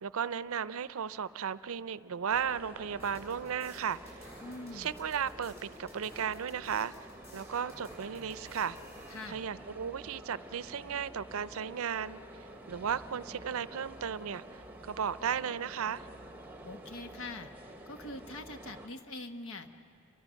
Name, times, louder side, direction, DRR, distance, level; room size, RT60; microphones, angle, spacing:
voice 1, 0.0-4.3 4.7-6.9 7.3-8.8 9.3-12.2 12.7-16.1, right 7 dB, 75° right, 17 dB, 0.5 m, -35 dB
sound 1, 2.3-18.9, right 1 dB, 10° right, 0.9 m, -49 dB
sound 2, 2.9-9.3, left 1 dB, 25° left, 7.5 m, -55 dB
Wind instrument woodwind instrument, 3.8-13.9, right 3 dB, 45° left, 5.9 m, -61 dB
voice 2, 4.4-4.9 9.1-9.4 16.6-17.5 17.9-19.7, left 2 dB, 75° left, 7 dB, 1.2 m, -43 dB
28.5 x 24.0 x 6.3 m, 2.7 s
head